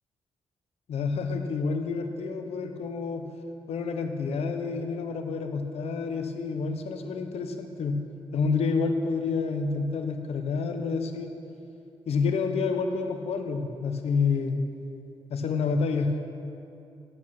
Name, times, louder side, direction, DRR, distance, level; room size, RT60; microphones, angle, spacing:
voice 1, 0.9-3.3 3.7-8.0 8.3-11.3 12.1-14.6 15.3-16.2, left 4 dB, 80° left, 6 dB, 0.9 m, -28 dB
10.5 x 8.6 x 5.9 m, 2.6 s
wide cardioid pair, 145°, 10 cm